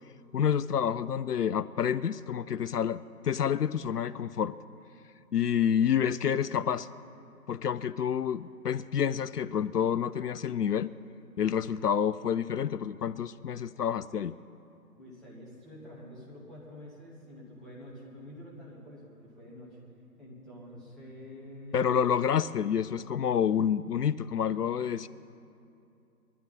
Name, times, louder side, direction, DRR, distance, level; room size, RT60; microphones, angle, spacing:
voice 1, 0.3-4.5 5.3-6.9 7.5-10.9 11.4-14.3 21.7-25.1, left 8 dB, 75° left, 16 dB, 0.5 m, -28 dB
voice 2, 15.0-19.8 20.2-21.7, left 1 dB, ahead, -9 dB, 1.2 m, -47 dB
21.5 x 12.5 x 4.2 m, 2.7 s
figure-of-eight pair, 145°, 48 cm